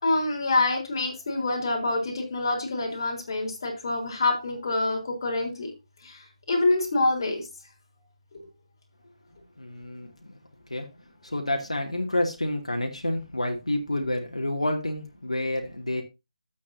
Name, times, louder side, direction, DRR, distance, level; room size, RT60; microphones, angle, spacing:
voice 1, 0.0-5.7 6.0-7.5, left 2 dB, 40° left, 3.8 m, -26 dB
voice 2, 9.6-10.4 10.7-10.9 11.2-16.0, left 1 dB, 75° left, 2.4 m, -29 dB
12.5 x 8.3 x 2.7 m
figure-of-eight pair, 155°, 3 cm